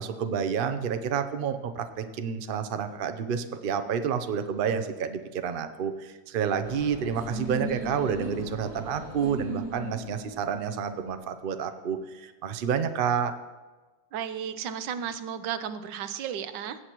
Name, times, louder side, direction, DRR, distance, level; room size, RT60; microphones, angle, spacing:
voice 1, 0.0-13.3, right 7 dB, 70° right, 9 dB, 0.5 m, -29 dB
sound 1, 6.6-11.1, equal, 30° right, 4.0 m, -38 dB
voice 2, 14.1-16.8, right 8 dB, 90° right, 11 dB, 1.4 m, -34 dB
17.0 x 8.1 x 3.0 m, 1.2 s
omnidirectional pair, 1.9 m